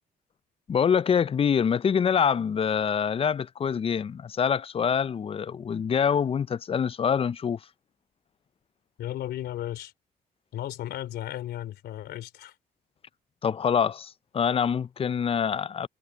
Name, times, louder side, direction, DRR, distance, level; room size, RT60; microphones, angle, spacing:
voice 1, 0.7-7.6 13.4-15.9, left 7 dB, 35° left, 0.5 m, -25 dB
voice 2, 9.0-9.9 10.5-12.5, left 12 dB, 80° left, 3.4 m, -35 dB
cardioid pair, 80°, 17 cm